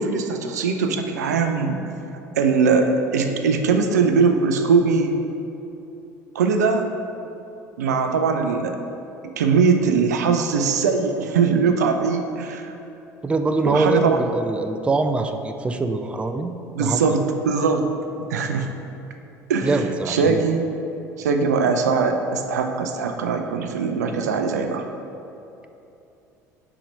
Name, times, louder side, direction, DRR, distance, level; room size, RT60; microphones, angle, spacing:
voice 1, 0.0-1.8 2.4-5.2 6.3-6.9 7.8-8.8 9.4-12.7 13.6-14.2 16.7-17.9 18.2-18.7 19.5-20.8 21.2-24.8, right 5 dB, 75° right, 5 dB, 0.4 m, -21 dB
voice 2, 13.2-16.5 16.8-17.2 19.6-20.4, right 3 dB, 10° right, 7 dB, 0.4 m, -23 dB
4.8 x 4.3 x 5.1 m, 2.8 s
figure-of-eight pair, 65°, 9 cm